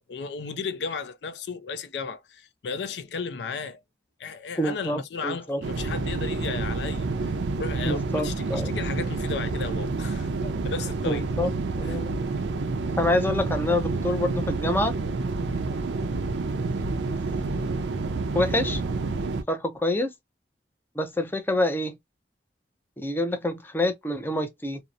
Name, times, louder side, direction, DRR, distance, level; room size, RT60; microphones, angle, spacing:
voice 1, 0.0-3.8 4.2-7.3 7.6-11.2 11.8-12.0, left 5 dB, 75° left, 0.4 m, -35 dB
voice 2, 4.6-5.6 7.9-8.7 11.1-11.5 11.8-12.1 13.0-14.9 18.3-18.8 19.5-20.1 21.0-22.0 23.0-24.8, left 1 dB, 10° left, 0.4 m, -26 dB
sound 1, 5.6-19.4, right 3 dB, 90° right, 0.5 m, -29 dB
2.7 x 2.0 x 2.4 m
head